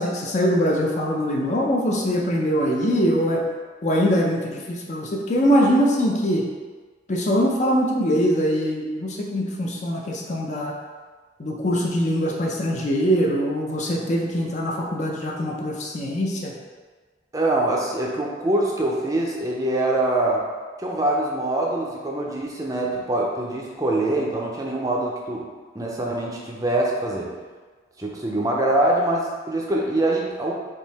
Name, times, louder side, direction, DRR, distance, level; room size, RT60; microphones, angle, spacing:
voice 1, 0.0-3.4 3.8-6.5 7.1-10.7 11.4-16.5, equal, 40° left, -1 dB, 0.5 m, -22 dB
voice 2, 17.3-20.4 20.8-25.5 25.7-27.3 28.0-30.5, right 1 dB, 20° right, -2 dB, 0.5 m, -24 dB
3.6 x 2.7 x 4.0 m, 1.4 s
head